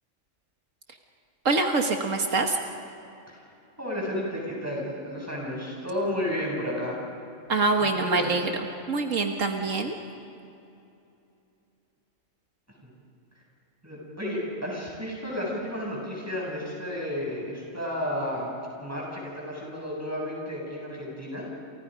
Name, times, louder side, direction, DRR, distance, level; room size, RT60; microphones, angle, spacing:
voice 1, 1.5-2.6 7.5-8.5 8.9-9.9, right 3 dB, 85° right, 3 dB, 1.9 m, -25 dB
voice 2, 3.8-7.0 7.9-8.3 13.8-18.5 18.8-21.5, left 1 dB, 10° right, -3 dB, 7.7 m, -32 dB
29.5 x 29.5 x 5.2 m, 2.7 s
omnidirectional pair, 1.3 m